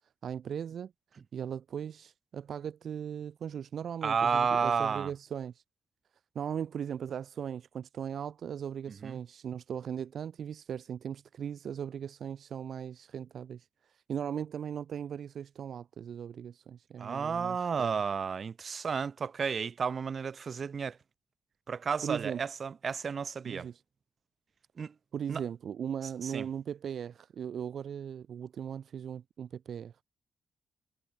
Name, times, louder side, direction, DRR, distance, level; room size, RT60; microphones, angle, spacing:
voice 1, 0.2-0.9 1.3-5.6 6.3-18.0 22.0-22.4 23.4-23.8 25.1-29.9, right 8 dB, 60° right, 1.5 m, -38 dB
voice 2, 4.0-5.1 9.0-9.2 17.0-21.0 21.7-23.7 24.8-24.9 25.3-25.4 26.2-26.4, right 6 dB, 40° right, 2.2 m, -32 dB
cardioid pair, 125°, 0 cm